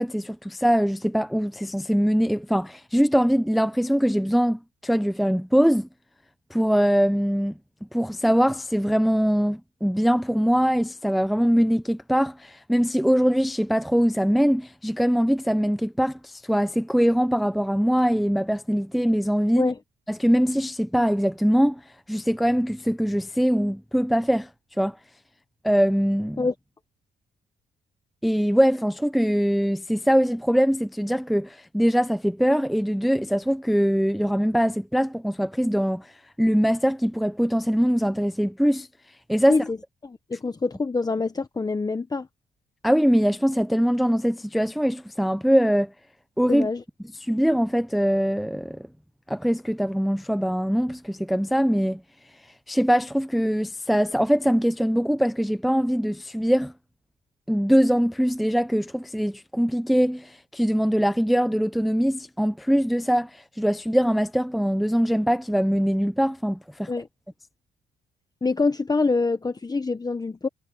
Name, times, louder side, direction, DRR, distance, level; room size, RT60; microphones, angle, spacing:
voice 1, 0.0-5.9 6.5-7.5 7.9-19.7 20.1-21.8 22.1-24.5 24.8-25.0 25.6-26.5 28.2-36.1 36.4-38.9 39.3-39.6 42.8-45.9 46.4-46.7 47.2-48.9 49.3-52.0 52.7-56.7 57.5-66.9, equal, ahead, 0.6 m, -22 dB
voice 2, 40.0-42.3 46.5-46.8 66.9-67.1 68.4-70.5, left 3 dB, 20° left, 1.0 m, -25 dB
cardioid pair, 90°, 20 cm